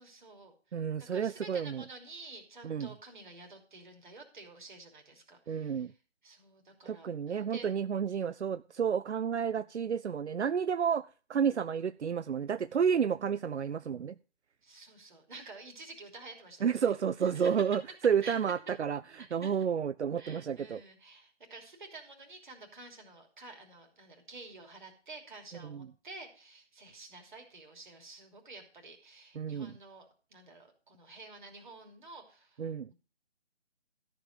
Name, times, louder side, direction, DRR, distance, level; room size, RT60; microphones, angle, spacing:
voice 1, 0.0-0.5 1.1-5.9 6.2-7.7 8.2-8.3 14.6-17.6 18.2-18.4 19.1-19.6 20.1-32.9, right 3 dB, 45° right, 3.0 m, -50 dB
voice 2, 0.7-1.8 2.6-2.9 5.5-5.9 6.9-11.0 11.3-14.1 16.6-19.0 19.3-20.8 25.6-25.9 29.4-29.7 32.6-32.9, right 7 dB, 80° right, 0.5 m, -31 dB
13.5 x 5.2 x 7.3 m
figure-of-eight pair, 155°, 34 cm